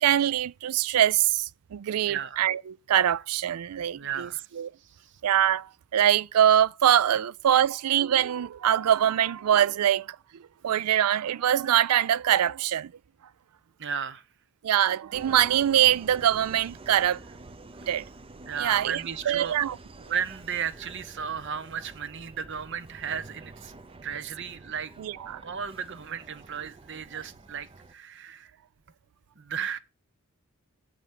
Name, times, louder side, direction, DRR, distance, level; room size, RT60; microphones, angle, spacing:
voice 1, 0.0-4.3 4.6-4.7 5.2-10.2 10.6-12.9 14.6-17.2 17.9-18.0 18.6-19.8 25.0-25.4, right 10 dB, 85° right, 0.4 m, -23 dB
voice 2, 2.1-2.4 3.9-4.5 4.8-5.1 7.5-7.6 13.8-14.2 18.5-19.6 20.0-23.7 24.0-24.9 25.4-28.5 29.4-29.8, right 7 dB, 55° right, 0.8 m, -34 dB
Subway metro underground, 15.1-27.9, right 2 dB, 25° right, 0.5 m, -48 dB
8.0 x 4.9 x 7.4 m
head